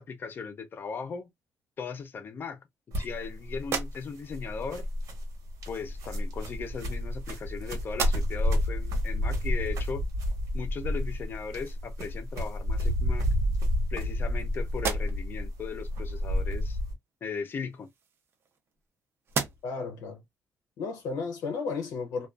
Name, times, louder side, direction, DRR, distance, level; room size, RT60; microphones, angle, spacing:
voice 1, 0.0-1.3 1.8-2.6 2.9-4.9 5.7-10.1 10.5-13.3 13.9-16.8 17.2-17.9, left 5 dB, 35° left, 0.4 m, -37 dB
sound 1, 2.9-16.9, left 1 dB, 70° right, 1.1 m, -30 dB
sound 2, 3.6-4.4 5.5-5.7 6.6-7.5 7.9-8.6 9.1-9.2 11.8-12.0 12.4-13.1 13.7-14.4 14.7-15.4 17.4-18.9 19.2-19.9, right 6 dB, 45° right, 0.5 m, -37 dB
voice 2, 19.6-20.2 20.8-22.3, left 4 dB, 85° left, 0.6 m, -33 dB
2.4 x 2.2 x 2.3 m
cardioid pair, 165°, 6 cm